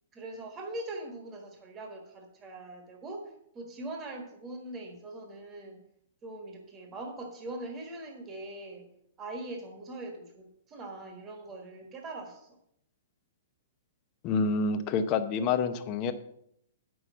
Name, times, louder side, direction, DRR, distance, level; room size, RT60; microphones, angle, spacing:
voice 1, 0.1-5.8 6.2-8.9 9.2-12.5, right 2 dB, 15° right, 2 dB, 1.5 m, -42 dB
voice 2, 14.2-16.1, left 5 dB, 25° left, 9 dB, 0.7 m, -27 dB
8.4 x 6.2 x 7.0 m, 0.72 s
hypercardioid pair, 165°, 0 cm